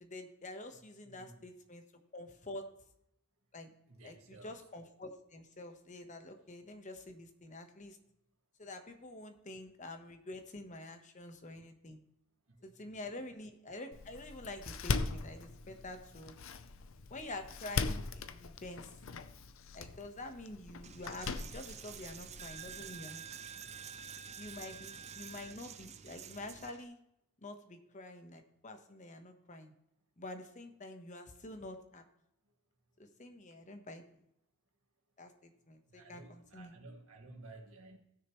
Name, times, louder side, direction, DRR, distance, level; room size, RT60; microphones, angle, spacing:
voice 1, 0.0-1.8 2.1-2.7 3.5-3.7 4.0-8.0 8.6-12.0 12.6-16.4 17.1-18.9 19.7-23.2 24.4-27.0 27.4-29.7 30.2-32.0 33.0-34.0 35.2-36.7, left 2 dB, 35° left, 6 dB, 1.1 m, -47 dB
voice 2, 1.0-1.5 3.9-4.6 12.9-13.2 35.9-38.0, right 2 dB, 85° right, 2 dB, 1.9 m, -54 dB
Door, 13.9-22.9, left 4 dB, 70° left, 0.6 m, -40 dB
Coin (dropping), 20.8-26.8, right 7 dB, 30° right, 0.5 m, -48 dB
17.5 x 6.6 x 3.1 m, 0.79 s
head